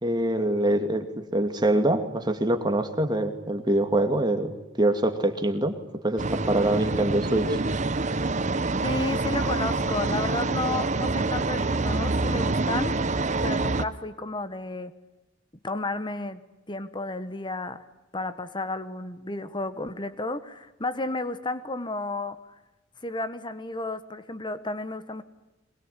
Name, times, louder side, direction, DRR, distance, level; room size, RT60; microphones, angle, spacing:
voice 1, 0.0-1.1 1.3-4.5 4.8-5.7 6.0-7.6, right 1 dB, 20° right, 6 dB, 2.4 m, -24 dB
sound 1, 6.2-13.8, right 3 dB, 35° right, 0.9 m, -26 dB
voice 2, 8.8-13.0 13.4-15.0 15.6-16.4 16.7-17.8 18.1-22.4 23.0-25.2, left 2 dB, 25° left, 12 dB, 1.4 m, -32 dB
24.0 x 22.0 x 10.0 m, 1.0 s
head